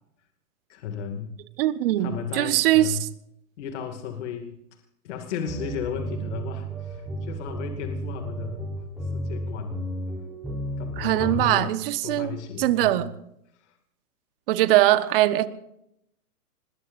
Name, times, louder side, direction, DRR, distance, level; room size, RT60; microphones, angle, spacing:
voice 1, 0.7-1.3 2.0-3.1 3.6-4.5 5.0-8.6 9.1-9.8 10.2-10.3 10.8-11.7 12.0-13.0 13.6-13.8, left 7 dB, 50° left, 5 dB, 2.5 m, -34 dB
voice 2, 1.6-3.1 11.0-13.1 14.5-15.5, right 15 dB, 40° right, 12 dB, 1.4 m, -22 dB
sound 1, 5.5-11.4, right 1 dB, ahead, 3.8 m, -33 dB
26.0 x 21.0 x 2.7 m, 0.78 s
hypercardioid pair, 150°, 45 cm